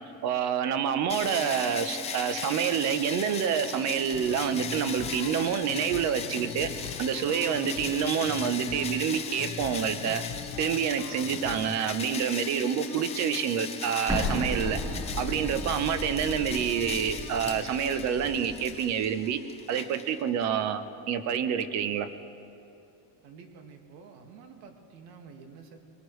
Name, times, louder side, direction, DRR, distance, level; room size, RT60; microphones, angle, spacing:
voice 1, 0.2-6.7 7.0-10.2 10.6-14.8 15.2-19.4 19.7-22.1, right 8 dB, 35° right, 11 dB, 0.7 m, -28 dB
sound 1, 1.1-20.4, left 6 dB, 15° left, 0.4 m, -38 dB
sound 2, 4.1-11.8, left 8 dB, 80° left, 1.1 m, -42 dB
Explosion, 14.1-18.8, left 1 dB, 10° right, 4.3 m, -35 dB
voice 2, 23.2-25.8, right 5 dB, 75° right, 4 dB, 1.9 m, -49 dB
24.0 x 19.0 x 3.1 m, 2.7 s
cardioid pair, 180°, 48 cm